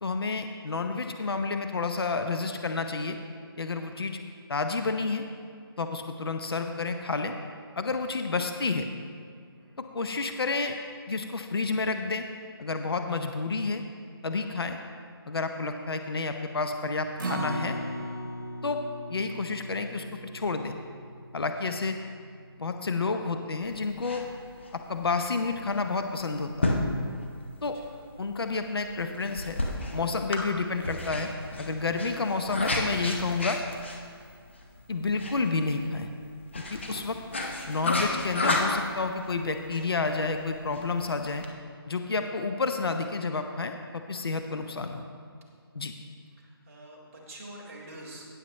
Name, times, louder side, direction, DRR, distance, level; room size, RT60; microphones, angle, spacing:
voice 1, 0.0-3.2 3.6-4.2 4.5-5.2 5.8-7.3 7.8-8.9 9.8-10.8 11.1-12.3 12.6-13.8 14.2-14.8 15.3-17.8 18.6-18.8 19.1-20.1 20.3-20.8 21.3-22.0 22.6-24.2 24.7-26.8 27.6-27.8 28.2-29.6 29.9-31.3 31.6-33.6 34.9-36.1 36.6-37.2 37.7-41.4 41.9-45.1 45.7-45.9, left 4 dB, 65° left, 6 dB, 0.8 m, -30 dB
Acoustic guitar, 17.2-23.5 23.9-24.0 24.4-24.5, right 1 dB, 50° right, 1.5 m, -38 dB
sound 1, 23.6-41.5, left 2 dB, 25° left, 0.8 m, -33 dB
voice 2, 41.8-42.1 46.3-48.2, right 1 dB, 35° right, -5 dB, 2.0 m, -47 dB
17.0 x 7.5 x 3.1 m, 2.2 s
hypercardioid pair, 180°, 13 cm